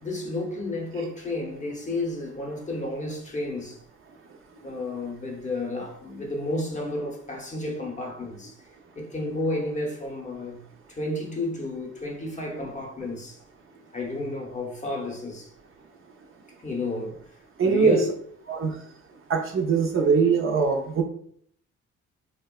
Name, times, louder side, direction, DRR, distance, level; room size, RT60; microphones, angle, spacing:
voice 1, 0.0-3.8 4.6-8.6 9.0-10.6 10.9-13.4 13.9-15.5 16.6-17.2 17.7-18.1, left 2 dB, 25° left, 0.6 m, -31 dB
voice 2, 17.6-18.0 18.5-18.7 19.3-21.0, right 5 dB, 45° right, 0.4 m, -21 dB
2.8 x 2.1 x 2.2 m
cardioid pair, 90°, 30 cm